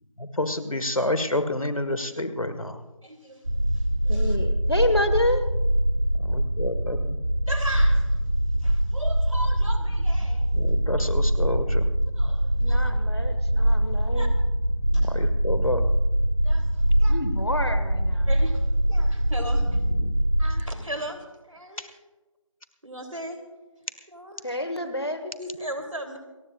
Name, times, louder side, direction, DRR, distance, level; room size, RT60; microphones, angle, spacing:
voice 1, 0.2-2.8 6.2-7.2 10.5-11.9 14.9-15.8 20.0-20.2, left 1 dB, 80° left, 9 dB, 1.7 m, -29 dB
voice 2, 3.0-3.5 3.7-4.4 7.5-8.1 8.6-10.5 12.1-12.9 14.1-14.3 15.0-15.2 16.4-17.1 18.2-19.8 20.4-22.0 22.8-23.4 24.1-24.6 25.4-26.2, right 1 dB, 75° right, 4 dB, 3.3 m, -37 dB
sound 1, 3.4-20.6, right 1 dB, 50° right, 1.8 m, -23 dB
voice 3, 4.1-5.5 12.6-14.3 17.1-18.3 24.4-25.4, left 1 dB, 50° left, 9 dB, 1.6 m, -28 dB
28.5 x 15.0 x 2.5 m, 1.2 s
figure-of-eight pair, 180°, 17 cm